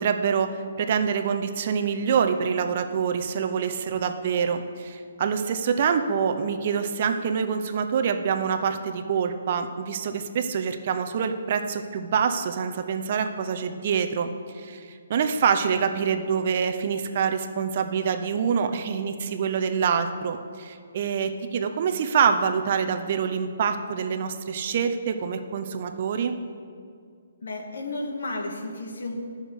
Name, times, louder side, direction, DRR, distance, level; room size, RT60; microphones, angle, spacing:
voice 1, 0.0-14.3 14.5-26.4, right 6 dB, 35° right, 7 dB, 0.7 m, -26 dB
voice 2, 27.4-29.2, left 2 dB, 80° left, 2 dB, 2.1 m, -32 dB
12.5 x 6.4 x 8.1 m, 2.2 s
hypercardioid pair, 170°, 0 cm